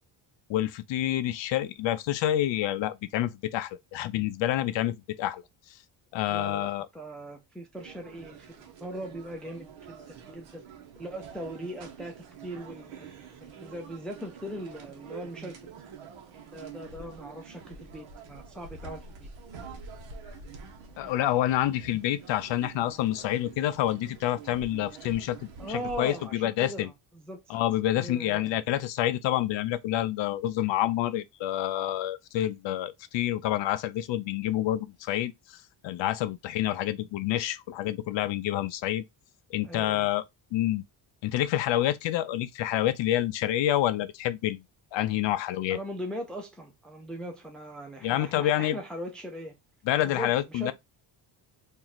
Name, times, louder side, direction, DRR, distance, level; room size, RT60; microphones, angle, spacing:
voice 1, 0.5-5.4 6.1-6.9 21.0-26.9 27.5-35.6 35.8-39.0 39.5-40.2 40.5-40.8 41.2-44.6 44.9-45.8 48.0-48.8 49.9-50.7, left 13 dB, 70° left, 0.5 m, -28 dB
voice 2, 6.2-8.5 8.8-10.6 11.0-13.1 13.4-15.5 16.5-19.3 25.6-27.6 28.0-28.6 39.6-40.1 45.7-49.6 50.0-50.7, equal, ahead, 0.4 m, -40 dB
sound 1, 7.7-26.3, right 5 dB, 75° right, 1.1 m, -46 dB
3.0 x 2.6 x 3.9 m
cardioid pair, 175°, 47 cm